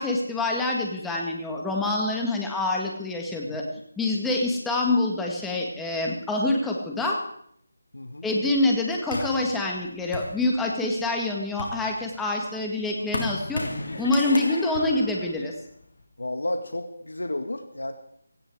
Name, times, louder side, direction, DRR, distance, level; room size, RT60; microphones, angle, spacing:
voice 1, 0.0-3.6 4.0-7.2 8.2-13.6 14.0-15.5, left 2 dB, 5° left, 0 dB, 2.0 m, -26 dB
voice 2, 7.9-8.3 16.2-17.9, left 1 dB, 85° left, 7 dB, 1.6 m, -32 dB
sound 1, 9.1-10.9 11.4-16.0, left 2 dB, 60° left, 3.3 m, -35 dB
17.5 x 16.0 x 4.8 m, 0.69 s
figure-of-eight pair, 165°, 0 cm